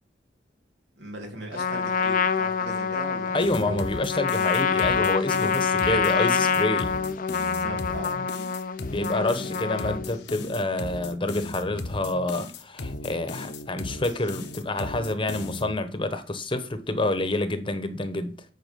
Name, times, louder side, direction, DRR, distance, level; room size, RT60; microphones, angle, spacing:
voice 1, 1.0-3.4 7.4-8.3, right 1 dB, 85° right, 2.7 m, -38 dB
Trumpet, 1.5-10.2, left 5 dB, 50° left, 0.5 m, -26 dB
voice 2, 3.3-6.9 8.9-18.4, left 2 dB, 30° left, 1.0 m, -28 dB
sound 1, 3.4-15.8, left 2 dB, 75° left, 1.0 m, -37 dB
9.3 x 4.9 x 5.2 m
head